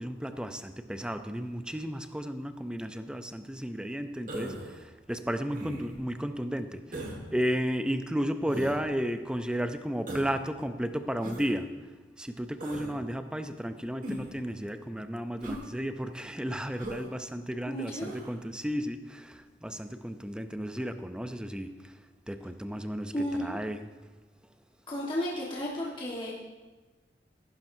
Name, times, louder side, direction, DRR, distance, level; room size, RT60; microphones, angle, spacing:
voice 1, 0.0-4.6 5.1-6.8 7.3-11.8 12.2-21.7 22.3-23.1 23.4-23.9, equal, 5° right, 9 dB, 0.5 m, -33 dB
Human voice, 4.3-4.8 5.5-6.0 6.9-7.2 8.5-8.8 10.1-10.4 11.2-11.5 12.6-12.9 14.0-14.4 15.4-15.7 16.8-17.1 18.0-18.3, right 1 dB, 50° right, 1.7 m, -39 dB
voice 2, 17.7-18.1 23.1-23.6 24.9-26.3, equal, 30° left, -5 dB, 1.5 m, -33 dB
15.0 x 11.5 x 2.7 m, 1.3 s
head